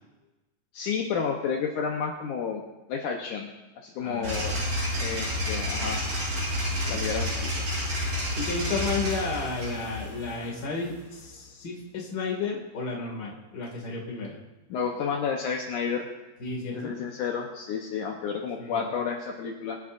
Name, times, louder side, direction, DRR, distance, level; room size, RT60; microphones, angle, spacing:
voice 1, 0.7-2.6 2.9-3.5 3.8-4.6 5.0-6.1 6.4-6.6 6.9-7.7 14.7-16.1 16.7-19.8, left 6 dB, 85° left, 1 dB, 1.7 m, -31 dB
voice 2, 4.0-4.7 6.8-7.1 8.3-14.4 16.4-17.0 18.6-18.9, left 4 dB, 35° left, -1 dB, 1.8 m, -33 dB
sound 1, 4.2-11.2, left 1 dB, 45° right, 6.8 m, -30 dB
25.0 x 11.0 x 2.6 m, 1.1 s
omnidirectional pair, 4.9 m